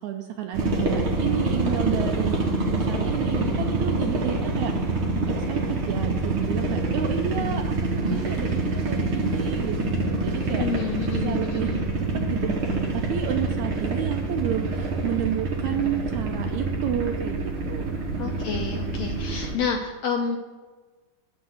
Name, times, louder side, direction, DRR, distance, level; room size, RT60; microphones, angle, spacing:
voice 1, 0.0-2.4 2.7-5.0 5.3-10.6 11.1-11.9 12.1-17.9, right 10 dB, 80° right, 5 dB, 1.8 m, -31 dB
sound 1, 0.5-19.6, right 2 dB, 55° right, 1.7 m, -26 dB
voice 2, 7.3-7.6 10.5-11.8 18.2-20.4, left 5 dB, 75° left, 3 dB, 1.7 m, -29 dB
8.0 x 6.6 x 7.6 m, 1.3 s
omnidirectional pair, 3.9 m